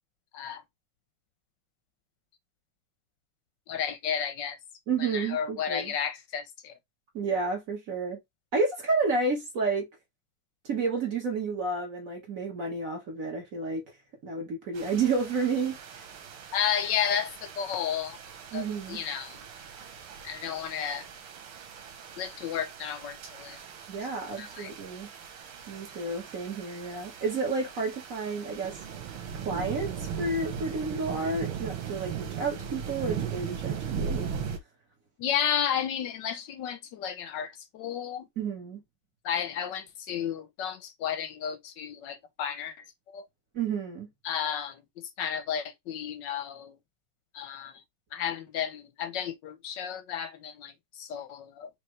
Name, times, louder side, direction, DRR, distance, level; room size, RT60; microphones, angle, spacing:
voice 1, 3.7-4.6 5.0-6.8 16.5-18.2 18.5-19.4 20.2-21.1 22.2-23.6 24.4-24.7 35.2-38.3 39.2-42.7 43.1-43.3 44.2-44.8 45.2-46.8 47.3-47.7 48.1-51.7, left 8 dB, 70° left, 1.1 m, -32 dB
voice 2, 4.9-5.9 7.1-8.2 8.5-9.9 10.6-13.8 14.2-15.8 18.5-19.0 23.9-25.1 25.7-28.8 29.3-34.3 38.4-38.8 43.5-44.1, right 4 dB, 45° right, 1.5 m, -30 dB
sound 1, 14.7-34.6, right 7 dB, 85° right, 1.9 m, -39 dB
5.1 x 2.8 x 3.1 m
omnidirectional pair, 2.4 m